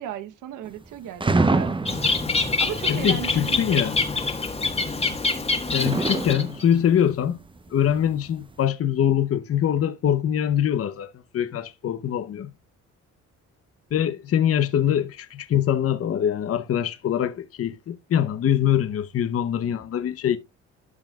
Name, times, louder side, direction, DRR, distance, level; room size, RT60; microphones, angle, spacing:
voice 1, 0.0-1.8 2.6-3.9, right 11 dB, 85° right, 1.0 m, -35 dB
sound 1, 0.6-0.9 1.2-3.1 3.5-4.1 4.8-5.2 5.7-8.6, right 3 dB, 15° right, 0.8 m, -26 dB
Bird, 1.9-6.6, left 3 dB, 20° left, 1.5 m, -25 dB
voice 2, 2.9-4.0 5.7-7.4 7.7-12.5 13.9-20.4, left 9 dB, 50° left, 0.8 m, -23 dB
13.0 x 5.7 x 2.3 m
cardioid pair, 90°, 30 cm